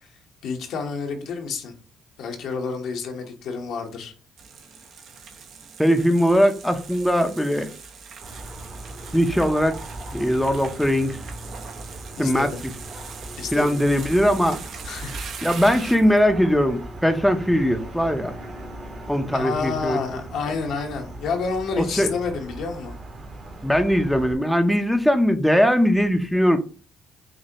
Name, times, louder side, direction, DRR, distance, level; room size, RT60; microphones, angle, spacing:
voice 1, 0.4-1.7 2.2-4.1 12.2-12.6 13.4-13.8 14.8-15.2 19.3-22.9, left 5 dB, 75° left, 1.0 m, -29 dB
sound 1, 4.4-16.2, right 5 dB, 65° right, 0.8 m, -41 dB
voice 2, 5.8-7.7 9.1-9.7 10.1-11.2 12.2-12.5 13.5-14.6 15.4-18.3 19.1-20.0 21.8-22.1 23.6-26.6, equal, ahead, 0.6 m, -20 dB
sound 2, 8.2-24.3, right 1 dB, 45° right, 1.2 m, -39 dB
6.2 x 2.1 x 2.8 m
cardioid pair, 80°, 0 cm